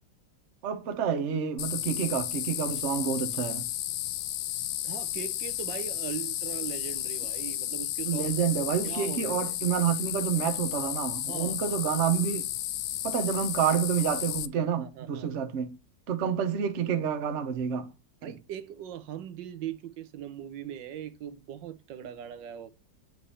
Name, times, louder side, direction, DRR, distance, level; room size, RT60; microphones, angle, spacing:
voice 1, 0.6-3.7 8.1-12.4 13.0-15.8 16.1-17.9 18.2-18.3, right 8 dB, 50° right, 1.0 m, -28 dB
sound 1, 1.6-14.5, left 13 dB, 70° left, 1.1 m, -33 dB
voice 2, 4.8-8.4 8.8-9.6 11.3-11.6 14.8-15.3 18.2-22.7, right 10 dB, 80° right, 1.4 m, -40 dB
8.8 x 3.3 x 5.5 m
omnidirectional pair, 2.0 m